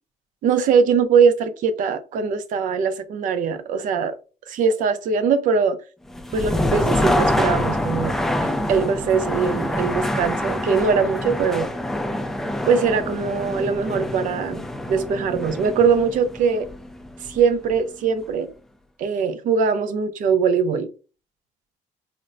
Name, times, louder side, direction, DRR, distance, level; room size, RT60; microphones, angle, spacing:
voice 1, 0.4-4.2 4.5-5.8 6.3-11.7 12.7-16.7 17.2-18.5 19.0-20.9, right 5 dB, 70° right, 0.5 m, -21 dB
sound 1, 6.1-17.9, left 1 dB, 5° left, 0.3 m, -26 dB
4.2 x 2.0 x 2.5 m
cardioid pair, 165°, 14 cm